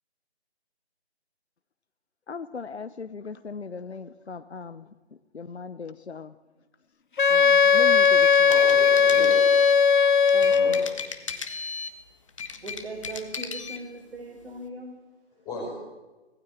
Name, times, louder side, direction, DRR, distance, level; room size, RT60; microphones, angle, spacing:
voice 1, 2.3-4.9 5.3-6.3 7.3-8.6 10.3-10.8, left 5 dB, 75° left, 12 dB, 1.1 m, -38 dB
Wind instrument woodwind instrument, 7.2-10.9, left 6 dB, 50° left, 0.8 m, -18 dB
sound 1, 7.9-9.8 10.3-12.0 12.3-13.8, left 5 dB, 30° left, 1.5 m, -36 dB
voice 2, 8.5-9.7 10.4-10.8 11.2-11.5 15.5-15.7, left 2 dB, 10° left, -2 dB, 5.2 m, -36 dB
voice 3, 12.6-15.0, right 2 dB, 70° right, -1 dB, 5.5 m, -39 dB
19.0 x 15.5 x 8.8 m, 1.2 s
figure-of-eight pair, 165°, 33 cm